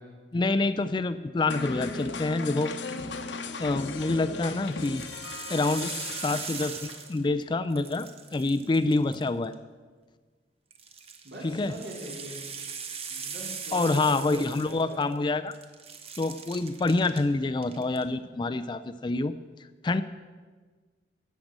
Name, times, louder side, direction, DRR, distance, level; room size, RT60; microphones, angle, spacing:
voice 1, 0.3-2.7 3.6-5.1 5.5-5.9 6.2-9.5 11.4-11.7 13.7-15.5 16.2-19.3 19.8-20.0, left 3 dB, 25° left, 12 dB, 0.3 m, -27 dB
sound 1, 1.5-7.2, left 4 dB, 85° left, 1.0 m, -37 dB
sound 2, 3.8-4.2 4.7-7.4 7.7-9.5 10.7-15.2 15.5-17.2 17.6-18.0, right 6 dB, 35° right, 0.9 m, -40 dB
voice 2, 11.2-12.4 13.1-15.0, equal, 65° right, -3 dB, 3.9 m, -41 dB
11.5 x 7.5 x 7.3 m, 1.4 s
head